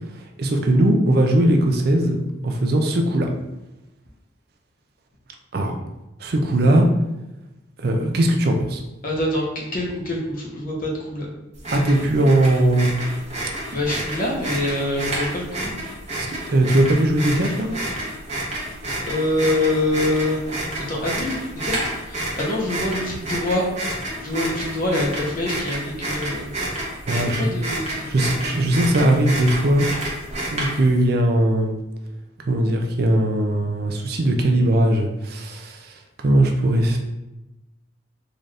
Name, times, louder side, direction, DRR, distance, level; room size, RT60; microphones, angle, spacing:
voice 1, 0.4-2.2 2.4-3.3 5.5-5.7 6.2-6.9 7.8-8.8 11.7-12.9 16.2-17.7 27.0-27.5 28.1-29.9 30.5-31.7 32.5-37.0, right 1 dB, 50° right, 3 dB, 0.4 m, -19 dB
voice 2, 9.0-11.3 13.7-15.7 19.1-20.4 20.9-21.4 21.6-23.6 24.2-26.5 27.1-28.5, left 1 dB, 45° left, -2 dB, 0.9 m, -25 dB
sound 1, 11.6-31.0, right 1 dB, 35° right, 1.0 m, -29 dB
3.9 x 2.6 x 3.2 m, 0.97 s
head